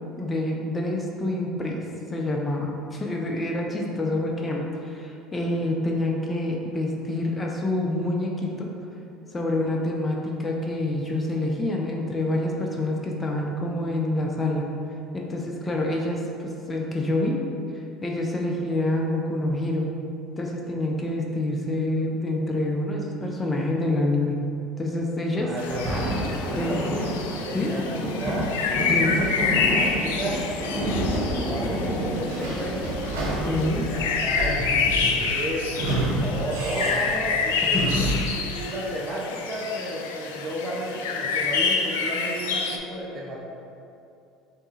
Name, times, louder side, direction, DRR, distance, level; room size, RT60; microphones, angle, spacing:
voice 1, 0.2-1.8 2.1-8.7 9.3-14.6 15.1-17.4 18.0-19.9 20.4-24.4 24.8-25.5 26.6-26.8 27.5-27.8 28.9-29.2 33.5-33.8 37.7-38.1, left 1 dB, 20° left, -1 dB, 0.6 m, -27 dB
Thunder, 25.4-36.4 37.0-37.1, equal, 15° right, 0.9 m, -30 dB
voice 2, 25.4-25.8 26.4-27.2 27.4-28.5 29.1-30.4 30.7-32.9 33.4-34.6 35.0-37.9 38.3-43.4, right 1 dB, 35° right, -5 dB, 0.7 m, -33 dB
sound 1, 25.6-42.8, left 5 dB, 80° left, 0.3 m, -28 dB
Sliding door / Squeak, 32.3-38.4, right 1 dB, 80° right, 0.8 m, -29 dB
3.6 x 2.9 x 4.0 m, 2.7 s
hypercardioid pair, 75°, 0 cm